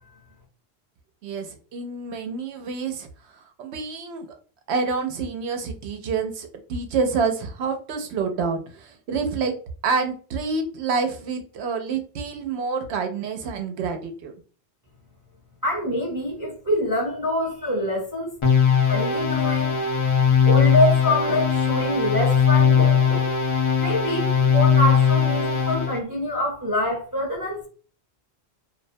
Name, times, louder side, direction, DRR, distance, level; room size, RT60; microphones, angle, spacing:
voice 1, 1.2-3.1 3.6-4.3 4.7-9.6 9.8-14.3, right 4 dB, 85° right, 5 dB, 0.9 m, -27 dB
voice 2, 15.6-18.4 18.9-19.8 20.5-23.3 23.8-27.7, left 1 dB, 20° right, -3 dB, 0.6 m, -25 dB
sound 1, 18.4-26.0, left 7 dB, 40° left, 0.4 m, -19 dB
2.4 x 2.1 x 2.6 m, 0.40 s
omnidirectional pair, 1.1 m